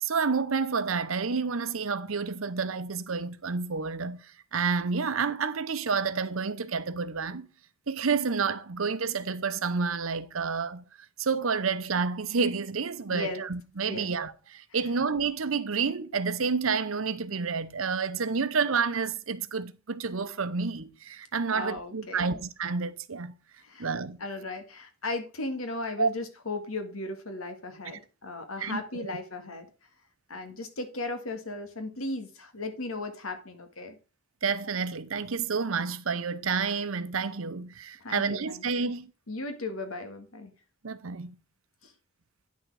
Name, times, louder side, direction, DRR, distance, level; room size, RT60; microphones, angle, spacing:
voice 1, 0.0-7.5 7.9-10.8 11.2-23.3 23.8-24.2 26.0-26.1 28.6-29.2 34.4-39.1 40.8-41.3, right 5 dB, 75° right, 0.8 m, -29 dB
voice 2, 13.1-13.4 13.9-14.1 21.5-22.4 23.6-23.9 24.2-29.7 30.3-34.0 38.0-38.9 39.3-40.5 41.8-41.9, left 2 dB, 85° left, 1.9 m, -36 dB
9.6 x 6.3 x 4.7 m
head